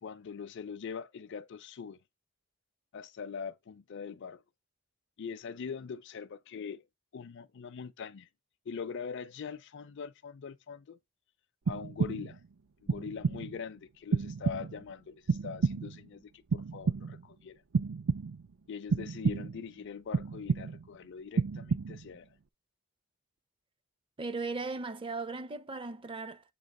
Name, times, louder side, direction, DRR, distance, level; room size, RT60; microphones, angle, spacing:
voice 1, 0.0-2.0 2.9-4.4 5.2-6.8 7.1-8.3 8.7-11.0 11.7-12.4 12.8-17.6 18.7-22.3, left 6 dB, 55° left, 0.4 m, -42 dB
sound 1, 11.7-12.5 12.9-13.6 14.1-14.9 15.3-16.1 16.5-17.3 17.7-18.5 18.9-19.7 20.1-21.0 21.4-22.2, right 4 dB, 75° right, 0.5 m, -31 dB
voice 2, 24.2-26.4, right 3 dB, 25° right, 0.5 m, -37 dB
7.4 x 2.8 x 5.2 m
head